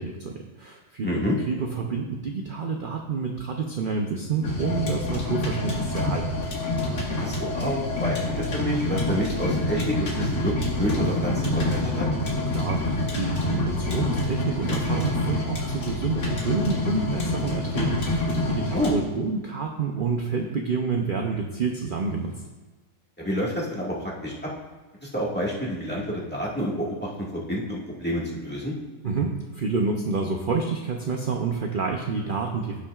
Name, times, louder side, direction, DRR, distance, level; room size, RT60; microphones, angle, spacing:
voice 1, 0.0-6.3 12.5-22.3 29.0-32.8, right 4 dB, 55° right, 1 dB, 0.5 m, -28 dB
voice 2, 1.0-1.3 7.2-12.0 18.7-19.0 23.2-24.5 25.0-28.7, equal, 5° left, -5 dB, 1.6 m, -28 dB
sound 1, 4.4-19.0, left 1 dB, 70° left, 2.2 m, -27 dB
16.0 x 5.8 x 2.4 m, 1.2 s
omnidirectional pair, 1.7 m